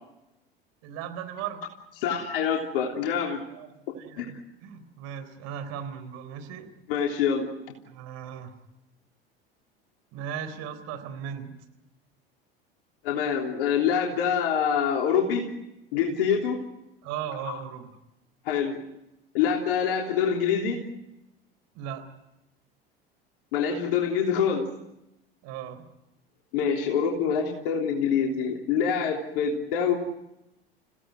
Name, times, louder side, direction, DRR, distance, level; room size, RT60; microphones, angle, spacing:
voice 1, 0.8-1.6 3.5-3.7 4.0-6.7 7.9-8.5 10.1-11.5 17.0-17.9 21.7-22.0 25.4-25.9, right 9 dB, 55° right, 9 dB, 3.9 m, -37 dB
voice 2, 2.0-3.4 3.9-4.3 6.9-7.5 13.0-15.5 15.9-16.6 17.5-17.6 18.4-18.8 19.3-20.8 23.5-24.7 26.5-30.0, left 7 dB, 65° left, 0 dB, 3.4 m, -25 dB
29.5 x 17.0 x 9.4 m, 0.93 s
figure-of-eight pair, 75°, 30 cm